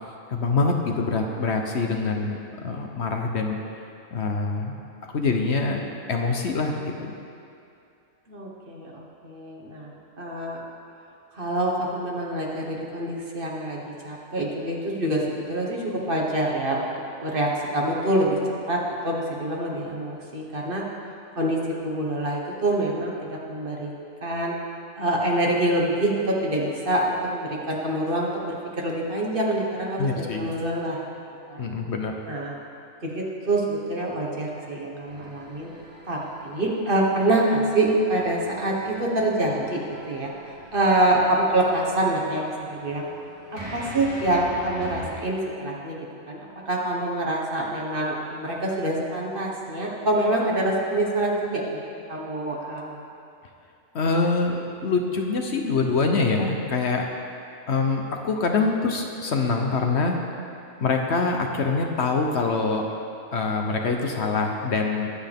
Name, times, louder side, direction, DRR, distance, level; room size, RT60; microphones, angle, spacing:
voice 1, 0.3-3.6 4.1-4.7 5.1-5.8 6.1-7.1 30.0-30.5 31.6-32.2 53.9-57.1 57.7-60.2 60.8-62.9 63.3-65.1, left 4 dB, 60° left, 2 dB, 1.1 m, -25 dB
voice 2, 8.3-10.6 11.3-16.9 17.2-18.4 18.7-20.8 21.4-21.6 21.8-23.9 24.2-24.6 24.9-31.0 31.5-31.6 32.3-32.6 33.0-35.7 36.1-39.8 40.1-40.3 40.7-43.1 43.5-46.0 46.3-46.4 46.7-53.0, right 1 dB, 40° right, -2 dB, 1.7 m, -26 dB
sound 1, 35.0-45.1, equal, 60° right, 3.0 m, -42 dB
21.5 x 8.0 x 3.6 m, 2.5 s
omnidirectional pair, 1.4 m